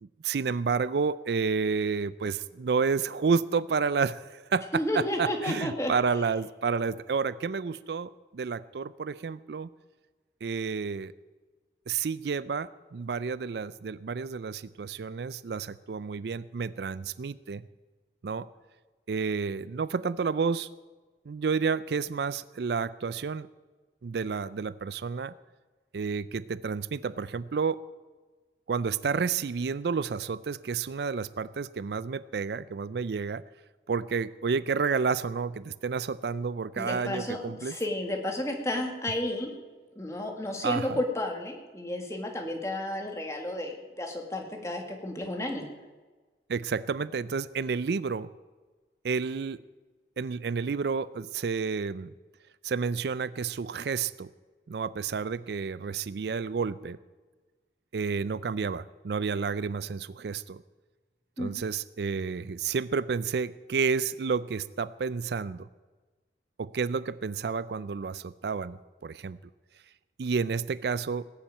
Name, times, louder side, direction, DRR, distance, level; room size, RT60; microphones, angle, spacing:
voice 1, 0.0-9.7 10.4-11.1 11.9-17.6 18.2-18.5 19.1-20.7 21.3-23.5 24.0-25.3 25.9-27.9 28.7-33.4 33.9-37.7 40.6-41.0 46.5-48.3 49.0-49.6 50.2-52.1 52.6-54.3 54.7-57.0 57.9-60.6 61.4-65.7 66.6-68.8 69.0-69.4 70.2-71.2, right 5 dB, 65° right, 17 dB, 0.4 m, -30 dB
voice 2, 4.7-5.9 36.8-39.5 40.0-45.7 61.4-61.5, left 1 dB, 15° left, 2 dB, 2.0 m, -32 dB
18.5 x 7.2 x 8.9 m, 1.3 s
head